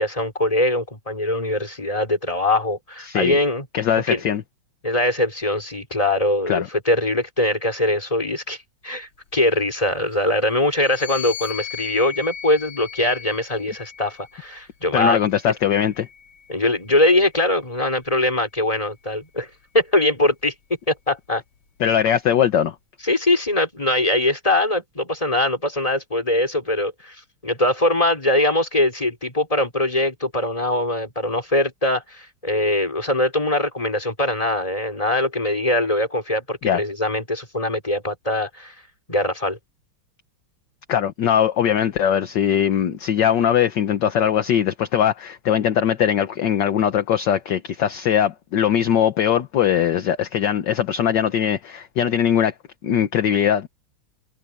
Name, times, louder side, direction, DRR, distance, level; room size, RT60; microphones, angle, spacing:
voice 1, 0.0-3.7 4.1-4.2 4.8-8.6 8.8-15.2 16.5-19.5 19.7-20.5 20.9-21.4 23.0-27.2 27.4-38.7 39.1-39.6, left 1 dB, 15° left, 4.4 m, -22 dB
voice 2, 3.1-3.4 3.7-4.4 6.5-6.7 14.9-16.1 21.8-22.7 36.6-36.8 40.9-52.5 52.8-53.7, left 9 dB, 60° left, 1.6 m, -20 dB
sound 1, 10.8-14.4 15.2-16.8, left 8 dB, 85° left, 2.7 m, -37 dB
omnidirectional pair, 2.4 m